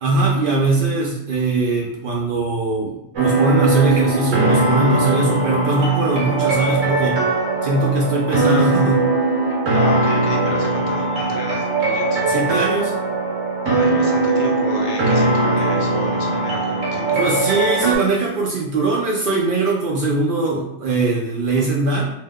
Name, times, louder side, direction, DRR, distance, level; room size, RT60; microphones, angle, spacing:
voice 1, 0.0-7.2 7.6-9.1 12.3-12.9 17.1-22.1, right 3 dB, 60° right, -3 dB, 0.6 m, -20 dB
sound 1, 3.2-18.0, right 2 dB, 85° right, 1.2 m, -20 dB
voice 2, 9.5-12.3 13.6-17.5, left 2 dB, 75° left, 0 dB, 1.0 m, -31 dB
2.8 x 2.1 x 3.4 m, 0.83 s
omnidirectional pair, 1.2 m